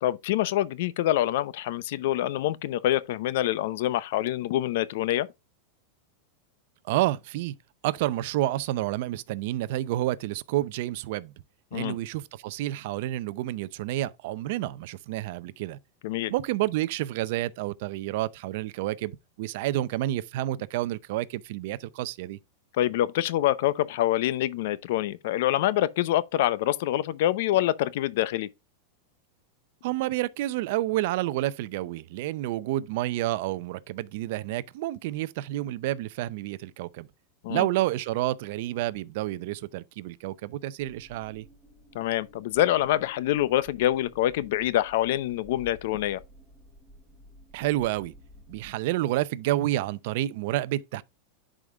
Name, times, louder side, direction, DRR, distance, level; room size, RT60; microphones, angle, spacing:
voice 1, 0.0-5.3 11.7-12.0 16.0-16.3 22.8-28.5 37.4-37.7 41.9-46.2, left 13 dB, 65° left, 0.6 m, -26 dB
voice 2, 6.8-7.5 7.8-11.3 11.7-15.8 16.3-22.4 29.8-37.1 37.5-41.5 47.5-48.1 48.5-51.0, right 15 dB, 60° right, 0.5 m, -29 dB
sound 1, 40.8-48.7, left 1 dB, ahead, 2.7 m, -53 dB
11.0 x 5.0 x 2.3 m
supercardioid pair, 140°, 0 cm